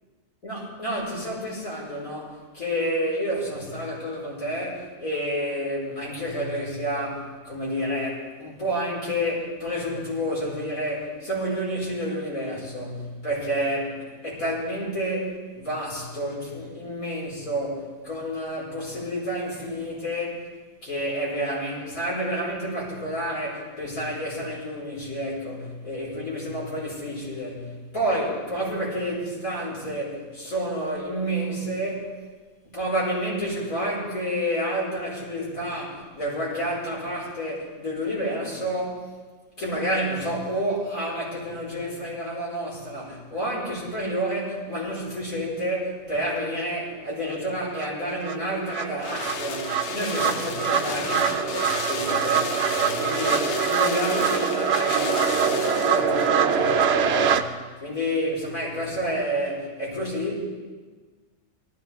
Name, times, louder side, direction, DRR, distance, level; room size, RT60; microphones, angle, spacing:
voice 1, 0.4-20.5 20.8-32.1 32.7-39.1 39.6-57.5 57.8-60.4, equal, 80° left, -6 dB, 5.3 m, -29 dB
sound 1, 47.3-47.4 47.8-57.4, right 7 dB, 60° right, 0.8 m, -24 dB
sound 2, 48.2-56.4 56.7-56.8, left 6 dB, 60° left, 1.0 m, -34 dB
18.5 x 14.0 x 3.5 m, 1.4 s
omnidirectional pair, 1.4 m